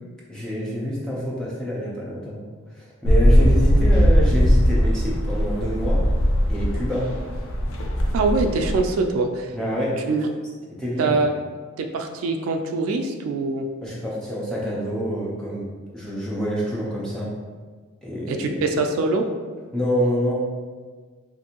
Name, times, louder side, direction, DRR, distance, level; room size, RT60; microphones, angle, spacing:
voice 1, 0.3-2.4 2.7-6.0 6.5-7.0 9.5-9.9 10.8-11.2 13.8-15.7 15.9-17.3 18.0-18.6 19.7-20.3, equal, 5° left, -7 dB, 0.5 m, -27 dB
sound 1, 3.0-8.9, equal, 75° left, 0.4 m, -19 dB
voice 2, 8.1-9.5 10.1-10.3 11.0-11.3 11.8-13.7 18.3-19.3, right 3 dB, 85° right, 6 dB, 0.3 m, -23 dB
2.6 x 2.6 x 2.8 m, 1.5 s
head